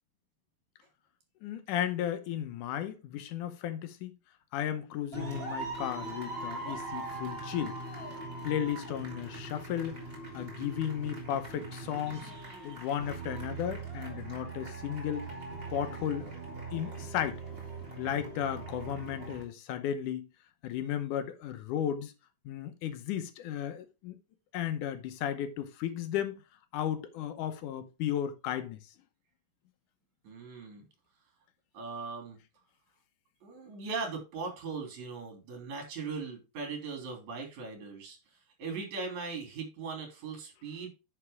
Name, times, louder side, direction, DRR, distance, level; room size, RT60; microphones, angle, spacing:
voice 1, 1.4-4.1 4.5-7.7 8.4-10.0 10.3-12.4 12.6-15.3 15.7-16.3 16.7-17.4 18.0-20.3 20.6-22.1 22.5-24.2 24.5-26.4 26.7-28.8, left 10 dB, 75° left, 2.3 m, -34 dB
sound 1, 5.1-19.4, right 3 dB, 20° right, 2.5 m, -41 dB
voice 2, 30.2-30.8 31.7-32.4 33.4-38.2 38.6-40.9, right 4 dB, 60° right, 4.2 m, -39 dB
10.0 x 6.0 x 3.5 m
omnidirectional pair, 3.8 m